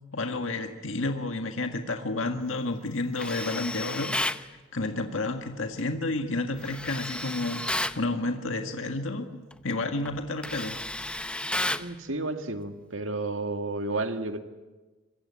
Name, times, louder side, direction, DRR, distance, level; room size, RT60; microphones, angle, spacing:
voice 1, 0.1-9.3 9.6-10.8, left 2 dB, 80° left, 5 dB, 1.8 m, -31 dB
Tools, 3.2-4.4 6.6-8.0 9.5-9.7 10.1-11.9, left 1 dB, 5° left, 0.8 m, -32 dB
voice 2, 11.7-14.4, right 2 dB, 80° right, 6 dB, 2.0 m, -32 dB
25.5 x 24.0 x 8.8 m, 1.2 s
head